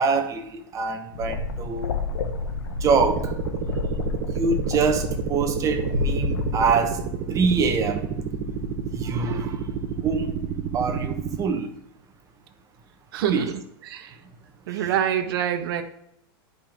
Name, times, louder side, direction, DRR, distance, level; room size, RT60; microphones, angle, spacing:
voice 1, 0.0-1.9 2.7-3.3 4.3-7.0 7.3-8.1 8.9-9.6 10.0-10.3 10.7-11.7 13.2-13.5 14.7-14.9, right 5 dB, 25° right, 7 dB, 1.2 m, -25 dB
sound 1, 1.1-6.7, left 4 dB, 85° left, 1.3 m, -29 dB
sound 2, 2.8-11.4, right 7 dB, 45° right, 1.0 m, -30 dB
voice 2, 13.1-13.5 13.9-14.1 14.7-15.8, right 10 dB, 65° right, 6 dB, 1.2 m, -25 dB
10.5 x 5.3 x 3.6 m, 0.74 s
supercardioid pair, 135°, 13 cm